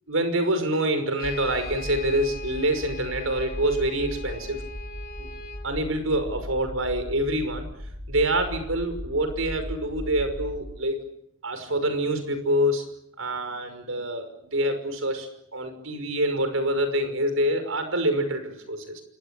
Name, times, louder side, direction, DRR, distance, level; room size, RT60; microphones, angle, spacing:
voice 1, 0.1-4.6 5.2-5.3 5.6-7.7 8.1-11.0 11.4-12.8 13.2-19.0, right 1 dB, 80° right, 9 dB, 5.7 m, -26 dB
Brass instrument, 1.2-5.7, left 2 dB, 50° left, 4.0 m, -40 dB
sound 1, 1.2-10.6, equal, 25° right, 5.4 m, -38 dB
28.0 x 23.5 x 8.6 m, 0.76 s
head